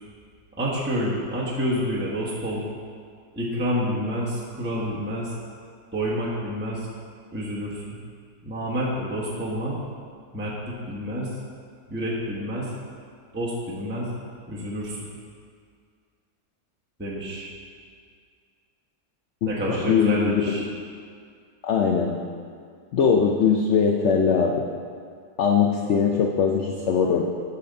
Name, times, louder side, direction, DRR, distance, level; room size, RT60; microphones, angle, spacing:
voice 1, 0.6-2.7 3.3-5.3 5.9-6.9 7.3-8.0 8.4-9.8 10.3-11.3 11.9-12.7 13.3-14.1 14.5-15.1 17.0-17.5 19.4-20.6, equal, 5° right, -6 dB, 1.1 m, -28 dB
voice 2, 19.4-20.6 21.6-22.2 22.9-24.7 25.4-27.2, left 6 dB, 65° left, 1 dB, 0.7 m, -21 dB
12.0 x 4.2 x 5.3 m, 2.1 s
omnidirectional pair, 1.7 m